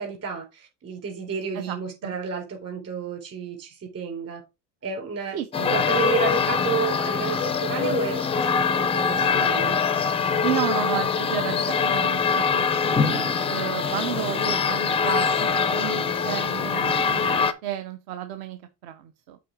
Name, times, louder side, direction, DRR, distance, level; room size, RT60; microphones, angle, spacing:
voice 1, 0.0-4.4 4.8-5.4 5.7-9.8, right 6 dB, 30° right, 3.9 m, -31 dB
voice 2, 1.5-2.2 5.3-5.8 10.4-19.4, right 10 dB, 55° right, 0.8 m, -33 dB
sound 1, 5.5-17.5, left 6 dB, 15° left, 0.4 m, -23 dB
7.7 x 4.0 x 4.6 m
cardioid pair, 140°, 47 cm